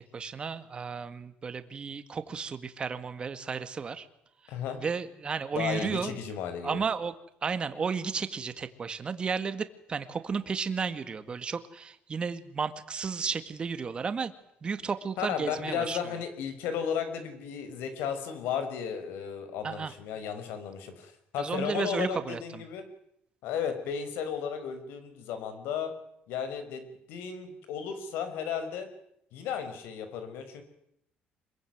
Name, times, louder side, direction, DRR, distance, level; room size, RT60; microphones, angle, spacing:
voice 1, 0.0-4.1 4.8-6.1 6.6-7.1 7.4-14.3 14.6-16.0 19.6-19.9 21.4-22.6, right 5 dB, 30° right, 11 dB, 2.0 m, -33 dB
voice 2, 4.5-4.8 5.5-6.8 15.2-22.8 23.4-25.9 26.3-28.9 29.3-30.6, left 7 dB, 85° left, 9 dB, 5.7 m, -34 dB
26.0 x 22.5 x 9.5 m, 0.76 s
cardioid pair, 145°, 4 cm